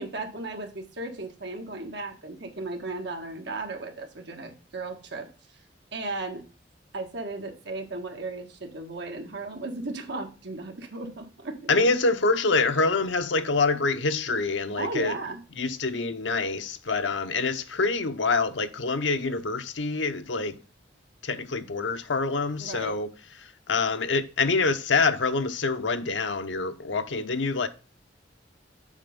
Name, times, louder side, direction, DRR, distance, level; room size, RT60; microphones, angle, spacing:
voice 1, 0.0-5.3 5.9-6.4 6.9-11.7 14.8-15.4 22.6-23.0, right 2 dB, 65° right, 1.6 m, -35 dB
voice 2, 11.7-15.2 15.6-20.6 21.2-23.1 23.4-27.7, left 3 dB, 75° left, 0.8 m, -26 dB
7.3 x 4.6 x 5.2 m
head